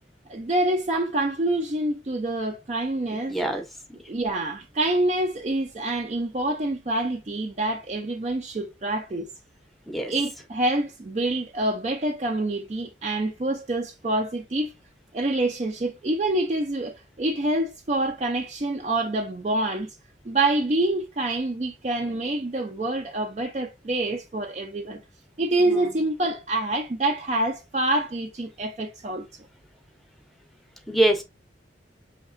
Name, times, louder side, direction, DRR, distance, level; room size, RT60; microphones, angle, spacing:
voice 1, 0.3-3.6 4.1-9.3 10.1-14.7 15.1-19.9 20.2-25.0 25.4-29.3, right 2 dB, 35° right, 0.4 m, -26 dB
voice 2, 3.3-3.6 9.9-10.1 25.7-25.9 30.9-31.2, right 1 dB, ahead, 0.7 m, -24 dB
6.2 x 2.9 x 2.5 m
head